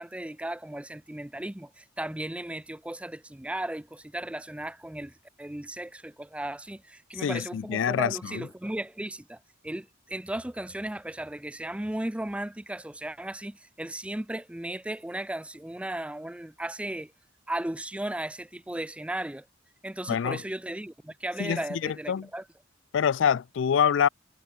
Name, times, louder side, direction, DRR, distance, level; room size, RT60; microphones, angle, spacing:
voice 1, 0.0-17.1 17.5-19.5 19.8-22.4, right 1 dB, 5° right, 0.5 m, -36 dB
voice 2, 7.2-8.5 20.1-20.4 21.4-22.3 22.9-24.1, left 7 dB, 65° left, 0.4 m, -26 dB
head